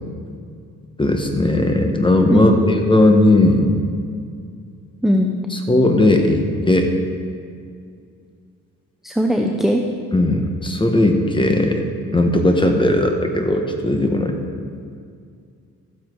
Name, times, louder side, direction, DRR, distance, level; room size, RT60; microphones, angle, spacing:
voice 1, 1.0-3.8 5.5-6.9 10.1-11.9 12.1-14.3, left 1 dB, 15° left, 4 dB, 1.3 m, -17 dB
voice 2, 2.3-2.6 5.0-5.4 9.0-9.8, equal, ahead, 2 dB, 0.7 m, -18 dB
13.0 x 7.7 x 4.6 m, 2.3 s
cardioid pair, 90°, 30 cm